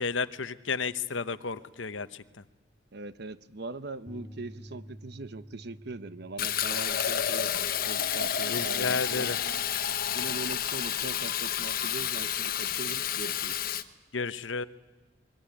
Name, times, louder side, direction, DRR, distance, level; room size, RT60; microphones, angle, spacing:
voice 1, 0.0-2.2 8.5-9.4 14.1-14.6, left 4 dB, 75° left, 13 dB, 1.0 m, -32 dB
voice 2, 2.9-7.5 7.9-9.4 10.1-13.7, right 3 dB, 55° right, 14 dB, 1.0 m, -41 dB
sound 1, 4.1-10.3, right 1 dB, ahead, 0.8 m, -51 dB
Fill (with liquid), 6.4-13.8, left 9 dB, 50° left, 1.1 m, -30 dB
25.0 x 22.5 x 10.0 m, 1.2 s
head